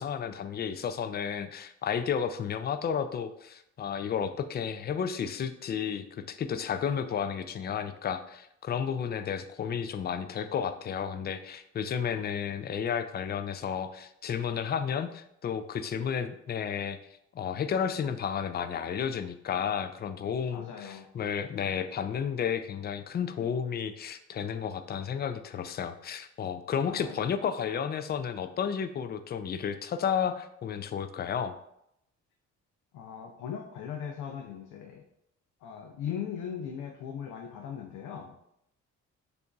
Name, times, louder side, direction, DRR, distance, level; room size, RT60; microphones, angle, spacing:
voice 1, 0.0-17.0 17.3-31.6, left 7 dB, 35° left, 11 dB, 0.4 m, -32 dB
voice 2, 20.5-21.1 26.9-27.2 32.9-35.0 35.6-38.4, left 8 dB, 85° left, 3 dB, 0.5 m, -39 dB
6.7 x 2.6 x 2.3 m, 0.77 s
cardioid pair, 90°, 30 cm